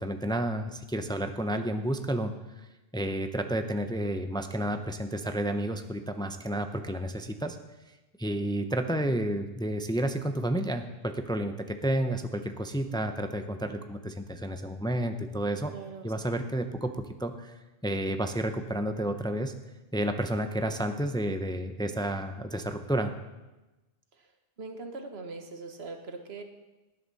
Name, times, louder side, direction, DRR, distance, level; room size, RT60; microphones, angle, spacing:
voice 1, 0.0-2.3 2.9-7.6 8.2-15.7 16.0-17.5 17.8-19.5 19.9-23.1, right 1 dB, 5° left, 7 dB, 0.6 m, -31 dB
voice 2, 15.7-16.3 24.1-26.4, right 3 dB, 90° right, 5 dB, 1.6 m, -42 dB
19.0 x 11.0 x 4.1 m, 1.1 s
omnidirectional pair, 1.0 m